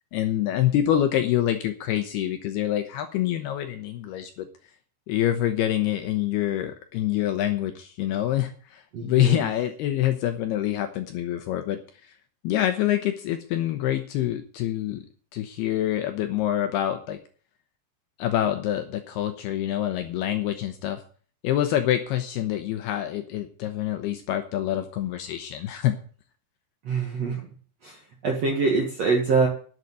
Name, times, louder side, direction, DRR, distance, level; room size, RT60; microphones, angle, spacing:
voice 1, 0.1-4.5 5.1-12.1 12.4-15.0 15.3-17.2 18.2-21.0 21.4-26.0, left 12 dB, 80° left, 8 dB, 2.4 m, -26 dB
voice 2, 8.9-9.5 26.9-27.4 27.8-28.0 28.2-29.5, right 4 dB, 60° right, 1 dB, 1.8 m, -24 dB
11.0 x 7.4 x 7.9 m, 0.43 s
omnidirectional pair, 5.4 m